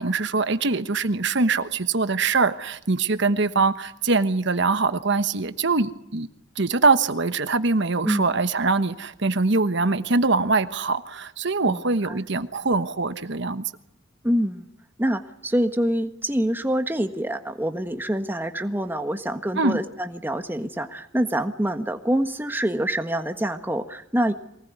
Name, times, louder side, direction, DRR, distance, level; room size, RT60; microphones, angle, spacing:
voice 1, 0.0-6.3 6.6-13.6 19.5-19.8, right 3 dB, 65° right, 11 dB, 1.2 m, -23 dB
voice 2, 8.0-8.4 11.7-12.1 14.2-14.7 15.0-24.3, right 1 dB, 10° right, 7 dB, 1.4 m, -26 dB
23.5 x 19.0 x 9.5 m, 0.78 s
head